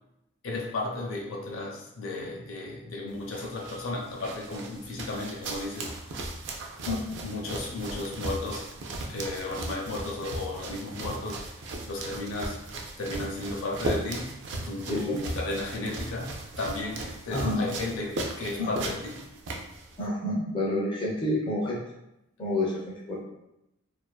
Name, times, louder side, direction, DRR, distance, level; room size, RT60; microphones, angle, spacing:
voice 1, 0.4-6.3 7.2-8.7 9.1-12.6 13.0-14.4 14.6-19.2, left 2 dB, 70° left, -1 dB, 0.5 m, -34 dB
sound 1, 3.1-20.1, right 2 dB, 55° right, 0.3 m, -37 dB
voice 2, 14.9-15.2 17.3-17.7 18.6-18.7 20.0-21.8 22.4-23.2, left 1 dB, 25° left, -5 dB, 0.4 m, -29 dB
2.4 x 2.4 x 2.2 m, 0.87 s
head